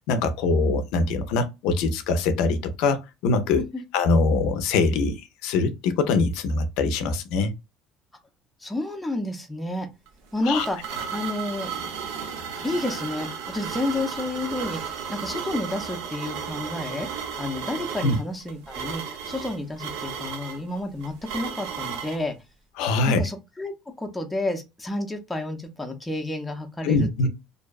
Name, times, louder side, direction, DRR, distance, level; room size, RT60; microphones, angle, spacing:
voice 1, 0.1-3.6 3.9-5.2 5.4-7.5 10.4-10.7 18.0-18.2 22.8-23.2 26.8-27.3, left 3 dB, 75° left, 0.4 m, -23 dB
voice 2, 8.6-9.9 10.3-10.8 11.1-11.7 12.6-17.1 17.4-22.4 23.1-23.7 24.0-27.3, left 2 dB, 5° left, 0.5 m, -30 dB
sound 1, 10.1-22.2, right 7 dB, 85° right, 0.5 m, -34 dB
2.6 x 2.1 x 2.3 m
cardioid pair, 155°, 0 cm